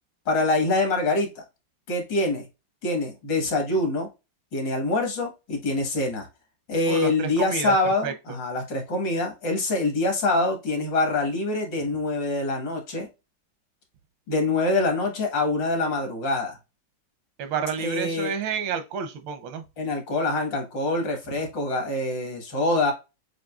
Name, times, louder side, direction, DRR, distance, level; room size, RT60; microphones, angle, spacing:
voice 1, 0.3-1.3 1.9-2.4 2.8-4.1 4.5-6.3 6.7-13.1 14.3-16.6 17.8-18.3 19.8-22.9, left 2 dB, 65° left, 2.1 m, -25 dB
voice 2, 6.9-7.8 8.0-8.4 17.4-19.6, right 7 dB, 85° right, 1.5 m, -30 dB
7.5 x 2.5 x 2.3 m
omnidirectional pair, 2.1 m